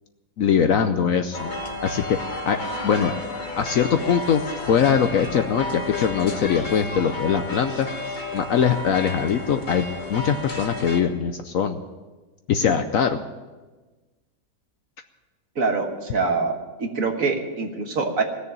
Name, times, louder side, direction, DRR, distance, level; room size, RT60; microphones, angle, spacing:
voice 1, 0.4-1.5 1.8-3.1 3.6-4.4 4.7-7.9 8.3-11.8 12.5-13.2, left 7 dB, 65° left, 8 dB, 0.9 m, -22 dB
sound 1, 1.3-11.0, left 2 dB, 30° left, 1.4 m, -32 dB
voice 2, 15.6-16.5 16.8-18.2, right 4 dB, 55° right, 3 dB, 1.8 m, -24 dB
17.5 x 6.9 x 8.8 m, 1.3 s
omnidirectional pair, 1.8 m